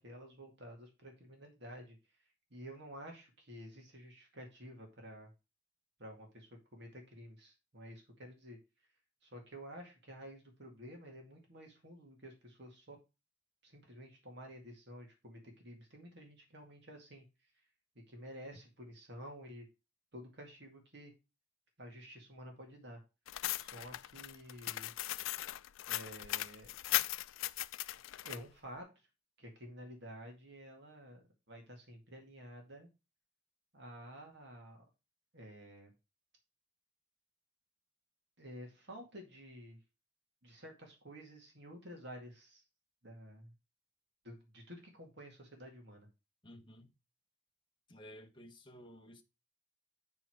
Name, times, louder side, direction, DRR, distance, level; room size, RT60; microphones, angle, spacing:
voice 1, 0.0-2.2 2.5-5.3 6.0-8.6 9.2-13.0 13.6-17.7 18.1-19.7 20.1-21.1 21.8-23.0 23.6-24.9 25.9-26.8 28.2-29.1 29.4-32.9 33.7-34.8 35.3-35.9 38.4-39.8 40.4-42.6 43.0-43.5 44.2-46.1, equal, 60° right, 2.1 m, -51 dB
sound 1, 23.3-28.4, left 15 dB, 80° left, 0.3 m, -38 dB
voice 2, 46.4-46.9 47.9-49.2, equal, 25° left, 1.1 m, -54 dB
8.7 x 4.7 x 4.7 m
head